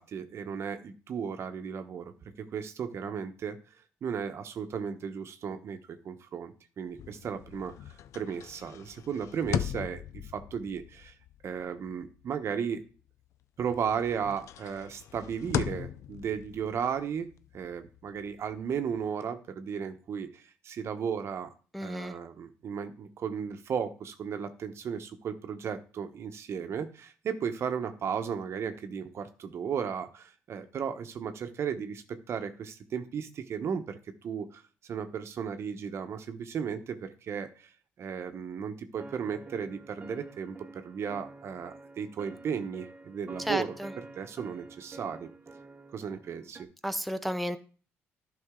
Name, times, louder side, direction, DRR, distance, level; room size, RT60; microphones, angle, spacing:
voice 1, 0.0-3.6 4.0-11.1 11.4-12.8 13.6-21.5 21.8-37.7 38.0-43.7 44.2-45.3 45.9-46.7, right 7 dB, 60° right, 1.0 m, -35 dB
sound 1, 6.9-13.4 13.7-19.1, left 10 dB, 70° left, 0.5 m, -39 dB
voice 2, 21.7-22.1 43.4-43.9 46.8-47.6, equal, ahead, 0.6 m, -32 dB
sound 2, 39.0-46.6, right 3 dB, 30° right, 1.0 m, -48 dB
11.0 x 5.4 x 3.7 m
supercardioid pair, 75°, 5 cm